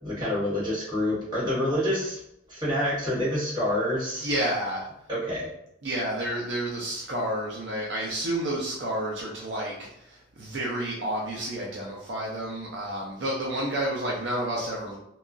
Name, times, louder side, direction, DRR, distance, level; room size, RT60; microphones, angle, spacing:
voice 1, 0.0-2.2 2.5-4.3 5.1-5.5, left 1 dB, 25° right, -9 dB, 1.4 m, -27 dB
voice 2, 4.2-4.9 5.8-15.0, right 1 dB, 65° right, -3 dB, 0.5 m, -30 dB
2.8 x 2.3 x 2.5 m, 0.81 s
head